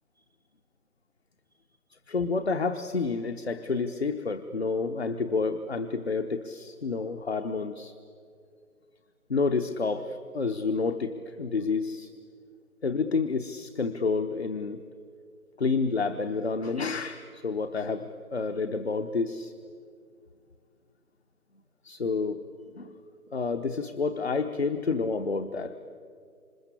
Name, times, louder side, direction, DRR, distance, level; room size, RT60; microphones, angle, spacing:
voice 1, 2.1-7.9 9.3-12.1 12.8-14.8 15.6-19.5 21.8-22.4 22.7-22.9 23.3-25.7, left 4 dB, 45° left, 7 dB, 1.0 m, -29 dB
27.5 x 25.5 x 8.3 m, 2.3 s
figure-of-eight pair, 160°, 46 cm